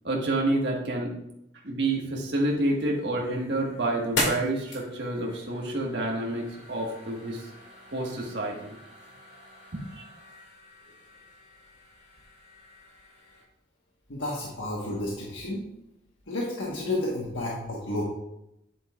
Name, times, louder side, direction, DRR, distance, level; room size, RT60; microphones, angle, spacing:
voice 1, 0.0-1.1 1.6-7.4 7.9-8.5, right 2 dB, 65° right, -2 dB, 1.6 m, -28 dB
sound 1, 2.5-13.4, left 1 dB, 65° left, 2.0 m, -39 dB
voice 2, 14.1-15.6 16.3-18.0, left 1 dB, 85° left, -4 dB, 1.4 m, -31 dB
9.0 x 7.3 x 2.4 m, 0.83 s
head